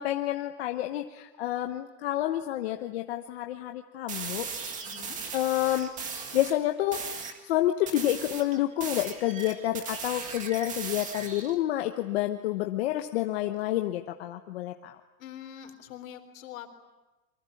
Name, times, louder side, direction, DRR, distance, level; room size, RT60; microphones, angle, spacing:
voice 1, 0.0-4.5 5.3-7.0 7.4-15.0, left 14 dB, 40° left, 5 dB, 1.1 m, -29 dB
sound 1, 4.1-6.6 6.9-7.4 7.9-11.6, right 5 dB, 15° right, 1.8 m, -38 dB
voice 2, 4.8-5.2 15.2-16.7, left 10 dB, 55° left, 7 dB, 4.0 m, -44 dB
27.5 x 24.0 x 8.5 m, 1.1 s
supercardioid pair, 175°, 47 cm